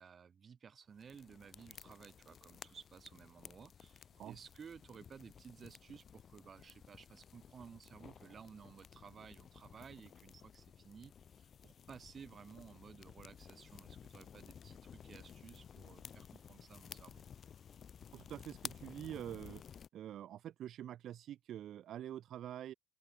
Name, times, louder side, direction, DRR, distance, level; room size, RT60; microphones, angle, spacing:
voice 1, 0.0-17.3, right 6 dB, 35° right, 2.2 m, -56 dB
sound 1, 1.0-19.9, left 7 dB, 40° left, 0.9 m, -55 dB
voice 2, 18.1-19.6 19.9-22.7, right 11 dB, 55° right, 0.8 m, -46 dB
open air
supercardioid pair, 100°, 0 cm